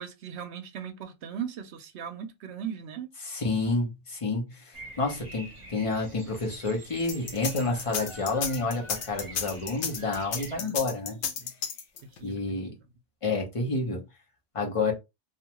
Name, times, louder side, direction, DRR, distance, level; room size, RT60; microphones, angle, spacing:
voice 1, 0.0-3.1 10.6-10.7 11.2-11.5 12.2-12.7, right 8 dB, 70° right, 0.8 m, -38 dB
voice 2, 3.2-11.2 12.2-12.8 13.2-14.0 14.5-14.9, left 3 dB, 30° left, 0.8 m, -29 dB
Bird vocalization bird call bird song, 4.7-10.6, right 2 dB, 30° right, 0.8 m, -46 dB
sound 1, 7.1-12.2, left 6 dB, 80° left, 1.0 m, -32 dB
2.5 x 2.3 x 2.9 m
omnidirectional pair, 1.2 m